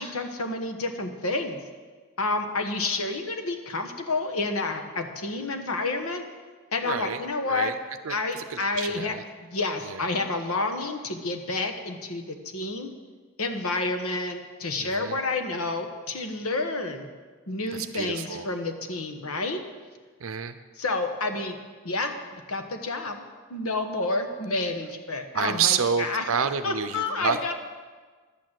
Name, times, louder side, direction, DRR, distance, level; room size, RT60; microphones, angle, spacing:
voice 1, 0.0-1.6 2.2-6.2 6.7-7.7 8.1-9.1 9.4-12.9 13.4-17.1 17.5-19.6 20.8-21.6 21.8-23.2 23.5-26.2 26.6-27.5, left 3 dB, 85° left, 6 dB, 1.3 m, -29 dB
voice 2, 6.8-7.7 8.0-9.2 9.8-10.1 14.8-15.2 17.7-18.5 20.2-20.6 25.3-27.4, right 7 dB, 70° right, 10 dB, 0.6 m, -29 dB
11.5 x 9.0 x 7.7 m, 1.4 s
head